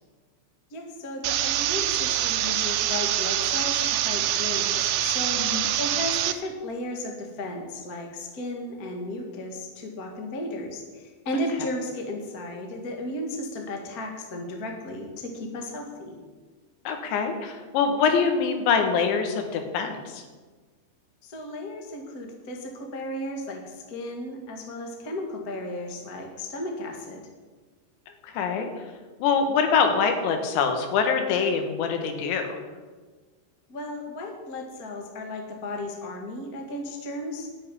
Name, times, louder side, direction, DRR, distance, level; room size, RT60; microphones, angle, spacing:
voice 1, 0.7-5.4 5.8-16.2 21.2-27.2 33.7-37.5, left 1 dB, 50° left, 3 dB, 1.0 m, -34 dB
sound 1, 1.2-6.3, right 12 dB, 80° right, 2.2 m, -25 dB
voice 2, 5.4-5.7 16.9-20.2 28.2-28.7 29.2-32.6, left 5 dB, 85° left, 6 dB, 3.9 m, -24 dB
11.5 x 7.7 x 9.9 m, 1.4 s
omnidirectional pair, 5.1 m